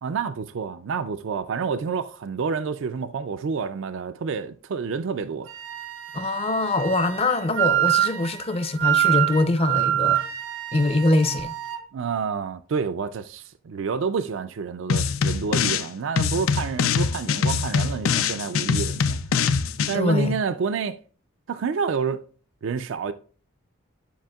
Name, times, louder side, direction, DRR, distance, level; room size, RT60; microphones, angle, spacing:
voice 1, 0.0-5.5 11.9-19.2 19.9-21.0 21.5-22.2 22.6-23.1, right 5 dB, 60° right, 0.4 m, -28 dB
Wind instrument woodwind instrument, 5.5-11.8, right 13 dB, 80° right, 0.9 m, -26 dB
voice 2, 6.1-10.2 10.7-11.5 19.9-20.3, left 2 dB, 30° left, 0.6 m, -23 dB
sound 1, 14.9-15.9 16.2-19.9, left 6 dB, 80° left, 0.5 m, -23 dB
10.0 x 5.0 x 2.3 m
head